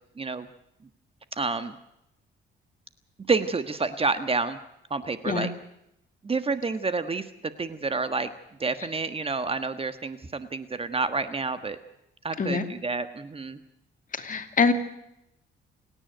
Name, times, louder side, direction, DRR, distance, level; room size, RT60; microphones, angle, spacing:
voice 1, 0.2-0.5 1.3-1.7 3.3-4.6 4.9-5.5 6.2-8.3 8.6-11.8 12.2-13.6, right 4 dB, 30° right, 11 dB, 1.5 m, -29 dB
voice 2, 14.1-14.7, left 5 dB, 40° left, 8 dB, 2.6 m, -24 dB
28.5 x 10.0 x 9.3 m, 0.82 s
cardioid pair, 90°, 20 cm